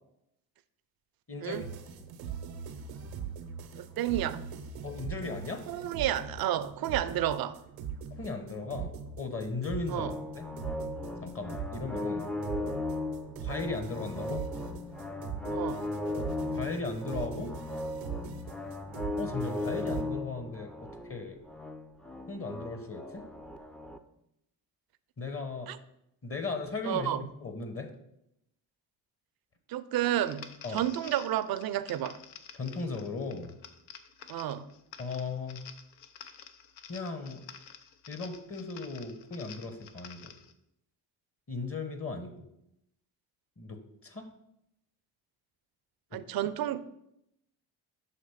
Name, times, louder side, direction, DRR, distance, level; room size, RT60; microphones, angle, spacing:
voice 1, 1.3-2.0 4.8-5.6 8.2-10.5 11.2-12.3 13.4-14.4 16.5-17.5 19.2-21.4 22.3-23.2 25.2-25.7 26.2-27.1 27.4-27.9 30.6-30.9 32.5-33.6 35.0-35.7 36.9-37.4 38.1-40.3 41.5-42.5 43.6-44.3 46.1-46.2, left 3 dB, 30° left, 7 dB, 1.0 m, -37 dB
sound 1, 1.5-20.0, right 7 dB, 90° right, 0.7 m, -42 dB
voice 2, 3.8-4.5 5.7-7.6 9.9-10.1 15.5-15.9 25.7-25.8 26.8-27.3 29.7-32.2 34.3-34.7 46.1-46.8, right 12 dB, 55° right, 13 dB, 0.5 m, -31 dB
sound 2, 9.9-24.0, left 2 dB, ahead, 0.4 m, -37 dB
sound 3, 30.2-40.5, left 8 dB, 75° left, 0.7 m, -50 dB
5.9 x 3.0 x 5.6 m, 0.80 s
supercardioid pair, 60°, 45 cm